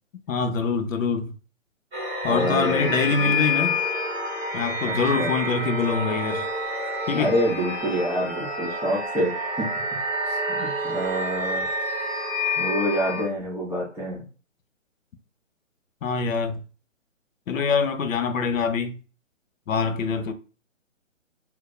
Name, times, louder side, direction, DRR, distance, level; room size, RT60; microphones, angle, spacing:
voice 1, 0.3-1.3 2.2-3.8 4.5-6.5 7.1-7.3 16.0-16.6 17.5-19.0 19.7-20.3, left 5 dB, 80° left, 0.5 m, -24 dB
sound 1, 1.9-13.2, left 1 dB, 20° right, 1.1 m, -28 dB
voice 2, 2.2-3.3 4.8-5.3 7.2-9.7 10.2-11.6 12.5-14.2, equal, 5° left, 0.9 m, -27 dB
3.0 x 2.0 x 2.2 m
hypercardioid pair, 165°, 39 cm